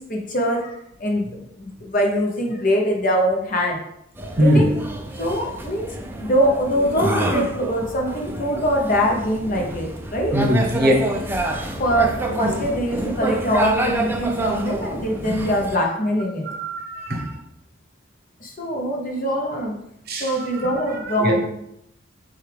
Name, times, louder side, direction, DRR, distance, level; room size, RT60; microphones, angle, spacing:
voice 1, 0.1-1.2 1.6-3.8 4.4-4.7 5.2-10.4 11.6-16.5 18.4-19.7 20.2-21.4, equal, 40° left, 0.7 m, -23 dB
sound 1, 4.2-15.8, right 1 dB, 10° right, 0.3 m, -27 dB
voice 2, 4.4-4.7 10.3-10.9 16.4-17.3 20.1-21.4, equal, 45° right, 0.8 m, -21 dB
6.4 x 2.3 x 3.3 m
head